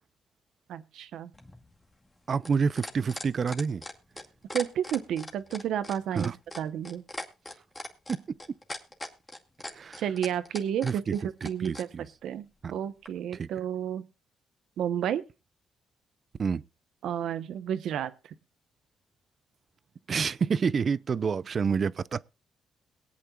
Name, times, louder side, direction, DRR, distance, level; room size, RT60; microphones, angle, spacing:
voice 1, 0.7-1.3 4.5-7.0 10.0-11.2 11.4-11.9 12.2-14.0 14.8-15.2 17.0-18.1, right 9 dB, 80° right, 1.0 m, -31 dB
sound 1, 1.3-11.9 13.1-13.2, left 1 dB, 15° left, 2.2 m, -40 dB
voice 2, 2.3-3.8 6.1-6.4 8.1-8.4 9.7-10.0 10.8-12.1 12.6-12.7 13.3-13.5 16.4-16.6 20.1-22.2, right 5 dB, 45° right, 0.5 m, -28 dB
22.0 x 8.7 x 2.4 m
cardioid pair, 95°, 0 cm